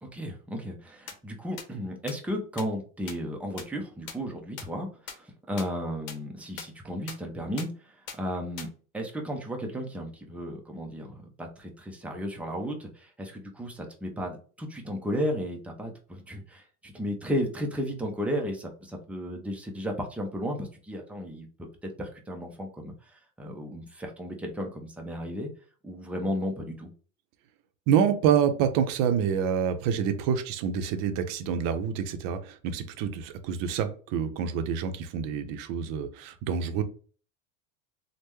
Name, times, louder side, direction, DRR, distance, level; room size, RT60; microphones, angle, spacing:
voice 1, 0.0-25.5 25.8-26.9, equal, 5° right, 2 dB, 0.4 m, -34 dB
sound 1, 1.1-1.2 1.6-1.7 2.1-2.2 2.6-2.7 3.1-3.2 3.6-3.7 4.1-4.2 4.6-4.7 5.1-5.2 5.6-5.7 6.1-6.2 6.6-6.7 7.1-7.2 7.6-7.7 8.1-8.2 8.6-8.7, left 7 dB, 85° left, 0.8 m, -38 dB
voice 2, 27.9-36.8, right 8 dB, 55° right, 9 dB, 0.6 m, -27 dB
3.3 x 2.1 x 3.0 m, 0.40 s
supercardioid pair, 120°, 40 cm